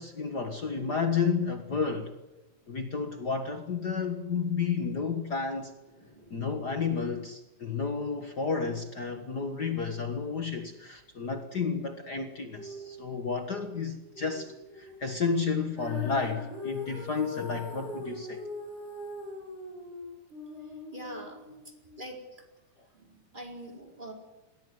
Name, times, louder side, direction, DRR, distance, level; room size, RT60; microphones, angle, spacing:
voice 1, 0.0-2.1 2.7-5.7 6.3-18.4, left 5 dB, 40° left, 7 dB, 1.7 m, -31 dB
voice 2, 5.9-6.5 12.5-13.1 14.1-15.2 20.9-21.4 22.0-22.2 22.9-24.1, right 1 dB, 15° right, 2 dB, 4.4 m, -45 dB
Female singing, 15.8-22.0, left 3 dB, 85° right, 8.9 m, -40 dB
22.0 x 17.0 x 9.6 m, 1.0 s
omnidirectional pair, 3.5 m